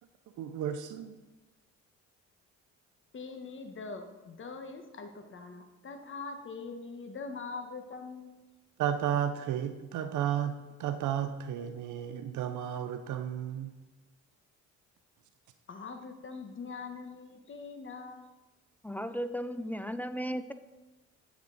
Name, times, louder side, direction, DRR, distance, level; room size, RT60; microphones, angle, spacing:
voice 1, 0.4-1.2 8.8-13.7, right 9 dB, 75° right, 9 dB, 0.6 m, -33 dB
voice 2, 3.1-8.4 15.7-18.3, left 4 dB, 40° left, 6 dB, 1.3 m, -43 dB
voice 3, 18.8-20.5, equal, 5° left, 10 dB, 0.4 m, -35 dB
10.5 x 7.1 x 4.0 m, 1.1 s
cardioid pair, 90°, 30 cm